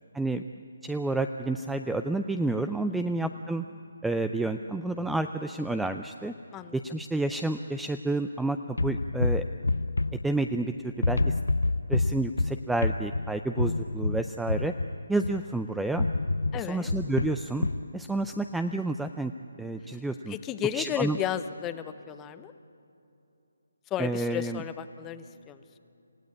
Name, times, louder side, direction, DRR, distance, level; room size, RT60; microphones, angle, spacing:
voice 1, 0.8-3.6 4.0-6.3 6.7-9.4 10.2-11.4 11.9-14.7 15.1-16.1 16.5-17.7 17.9-19.3 19.6-20.3 20.7-21.2 24.0-24.6, right 2 dB, 5° right, 8 dB, 0.4 m, -30 dB
sound 1, 8.8-10.7 11.0-15.5 16.0-17.9, left 2 dB, 90° left, 0.5 m, -28 dB
voice 2, 16.5-16.9 20.3-22.5 23.9-25.6, left 11 dB, 15° left, 11 dB, 0.8 m, -33 dB
27.5 x 16.0 x 8.4 m, 2.7 s
figure-of-eight pair, 155°, 0 cm